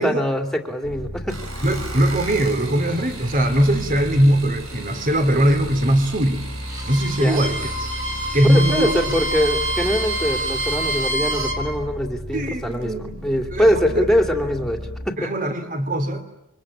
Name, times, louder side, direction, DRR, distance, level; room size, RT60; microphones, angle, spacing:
voice 1, 0.0-1.4 7.2-7.4 8.5-14.8 15.1-15.3, equal, ahead, 4 dB, 2.7 m, -23 dB
sound 1, 0.8-15.1, equal, 35° left, 2.1 m, -34 dB
sound 2, 1.2-11.1 12.3-12.8 13.3-13.7 14.0-14.1, right 3 dB, 80° right, 6.9 m, -39 dB
voice 2, 1.6-6.5 6.9-7.9 8.3-8.9 12.3-13.2 13.5-14.0 15.2-16.2, right 1 dB, 40° right, 9 dB, 3.0 m, -20 dB
Bowed string instrument, 6.6-11.6, right 1 dB, 15° right, 4.4 m, -27 dB
26.5 x 24.0 x 8.8 m, 0.86 s
head